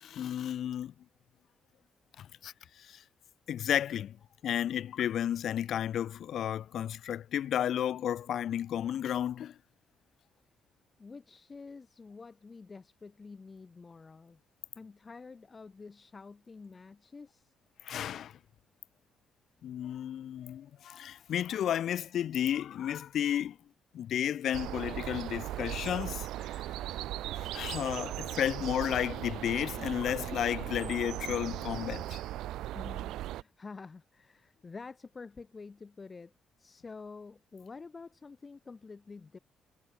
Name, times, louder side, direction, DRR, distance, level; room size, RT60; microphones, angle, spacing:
voice 1, 0.0-0.9 2.2-3.0 3.5-4.2 4.4-9.6 17.8-18.4 19.6-23.6 23.9-26.3 27.3-32.2, left 10 dB, 70° left, 0.3 m, -33 dB
voice 2, 11.0-14.4 14.8-17.5 32.7-36.3 36.6-39.4, left 4 dB, 30° left, 2.1 m, -48 dB
sound 1, 24.5-33.4, right 14 dB, 85° right, 0.3 m, -38 dB
cardioid pair, 90°, 0 cm